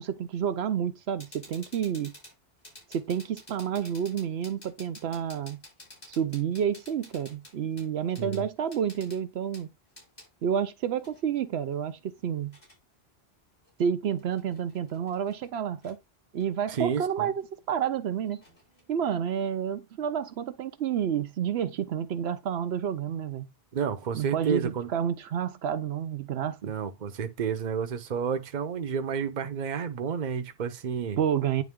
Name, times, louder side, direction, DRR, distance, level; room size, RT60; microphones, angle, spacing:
voice 1, 0.0-2.1 2.9-5.6 6.1-9.7 10.4-12.5 13.8-16.0 16.3-18.4 18.9-23.5 24.1-26.7 31.2-31.6, right 8 dB, 85° right, 0.9 m, -29 dB
sound 1, 1.2-10.3 11.0-12.8 13.6-13.7 14.2-15.5 15.8-16.0 16.4-19.2, left 1 dB, 60° left, 3.3 m, -53 dB
voice 2, 16.7-17.3 23.7-24.9 26.6-31.2, right 7 dB, 50° right, 0.8 m, -30 dB
9.3 x 3.3 x 3.6 m
omnidirectional pair, 1.0 m